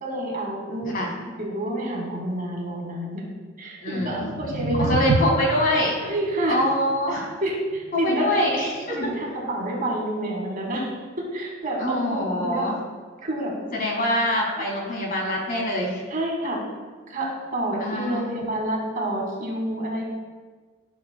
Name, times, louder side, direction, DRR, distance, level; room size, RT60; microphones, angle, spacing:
voice 1, 0.0-3.2 3.6-5.1 6.0-6.6 7.1-8.3 8.9-10.9 11.3-12.7 13.2-13.5 16.1-16.6 17.1-20.0, right 1 dB, 45° right, -1 dB, 1.8 m, -28 dB
voice 2, 3.8-4.2 4.8-6.0 6.5-7.3 7.9-9.1 11.8-12.7 13.7-16.0 17.8-18.3, left 1 dB, 50° left, -1 dB, 1.8 m, -24 dB
sound 1, 3.9-10.0, right 2 dB, 75° right, 0.4 m, -30 dB
12.0 x 6.2 x 2.2 m, 1.4 s
head